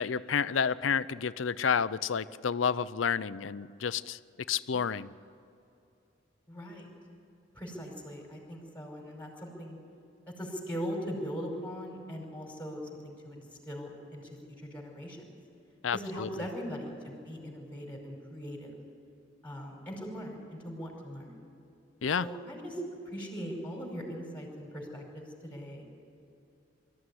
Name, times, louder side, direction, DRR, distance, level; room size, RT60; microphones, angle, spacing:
voice 1, 0.0-4.2 4.5-5.1 15.8-16.3 22.0-22.3, left 6 dB, 85° left, 16 dB, 0.6 m, -30 dB
voice 2, 6.5-6.9 7.5-9.8 10.4-15.3 15.9-18.7 19.4-21.5 22.2-22.8 23.1-25.9, equal, 10° left, 1 dB, 5.1 m, -40 dB
24.0 x 14.5 x 9.8 m, 2.8 s
head